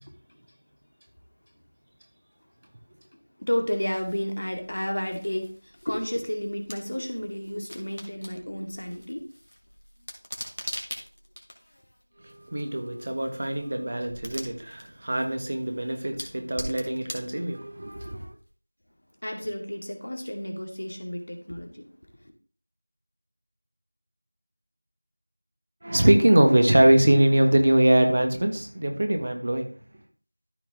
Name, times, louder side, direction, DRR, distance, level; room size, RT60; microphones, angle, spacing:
voice 1, 3.4-9.3 19.2-21.9, equal, 60° left, 2.1 m, -31 dB
sound 1, 3.9-18.5, equal, 75° left, 2.4 m, -43 dB
voice 2, 12.2-18.3 25.8-29.7, right 1 dB, 35° right, 1.4 m, -22 dB
13.5 x 4.5 x 3.6 m
figure-of-eight pair, 175°, 0 cm